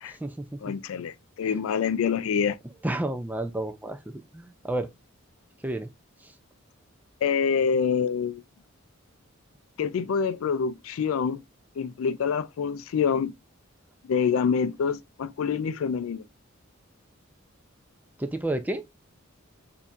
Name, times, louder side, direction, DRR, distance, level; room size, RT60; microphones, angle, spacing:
voice 1, 0.0-0.7 2.8-4.0 4.3-4.9 5.6-5.9 18.2-18.8, right 1 dB, 10° right, 0.4 m, -31 dB
voice 2, 0.6-2.6 7.2-8.4 9.8-11.4 11.8-13.3 14.0-16.2, left 6 dB, 75° left, 0.3 m, -26 dB
4.4 x 2.7 x 2.4 m
head